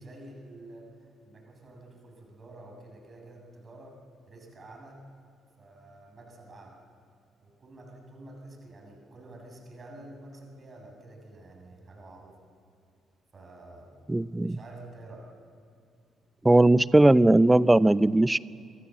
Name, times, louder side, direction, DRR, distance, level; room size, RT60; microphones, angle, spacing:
voice 1, 0.0-4.0 4.3-5.1 5.6-6.8 7.4-12.3 13.3-13.9 14.4-15.3, right 2 dB, 40° right, 1 dB, 7.4 m, -48 dB
voice 2, 14.1-14.6 16.4-18.4, right 2 dB, 15° right, 20 dB, 0.7 m, -19 dB
26.0 x 23.0 x 7.7 m, 2.4 s
figure-of-eight pair, 45°, 0 cm